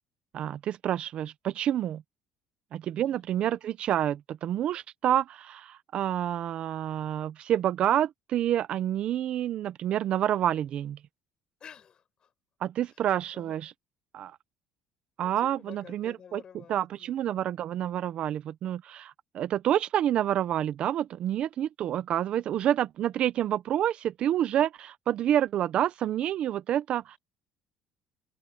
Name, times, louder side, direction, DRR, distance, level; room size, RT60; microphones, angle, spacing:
voice 1, 0.3-2.0 2.7-11.0 12.6-13.7 14.1-14.4 15.2-16.4 16.7-27.2, right 11 dB, 50° right, 0.7 m, -28 dB
voice 2, 11.6-12.3 12.9-13.0 13.3-13.6 15.2-17.5, left 8 dB, 35° left, 7.7 m, -51 dB
open air
cardioid pair, 135°, 2 cm